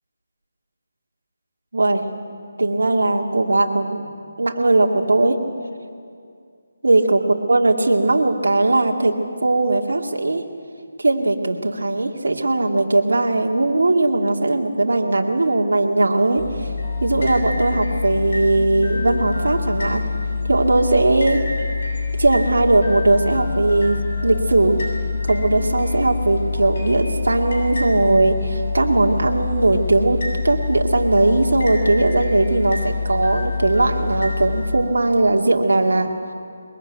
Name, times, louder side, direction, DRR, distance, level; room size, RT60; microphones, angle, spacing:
voice 1, 1.7-2.1 2.6-4.1 4.4-5.4 6.8-7.2 7.5-10.4 11.0-16.7 17.0-20.1 20.5-21.4 22.1-24.8 25.2-36.1, right 2 dB, 70° right, 2 dB, 2.3 m, -19 dB
sound 1, 16.4-34.6, left 4 dB, 55° left, 7.5 m, -25 dB
22.0 x 22.0 x 9.1 m, 2.3 s
figure-of-eight pair, 155°, 0 cm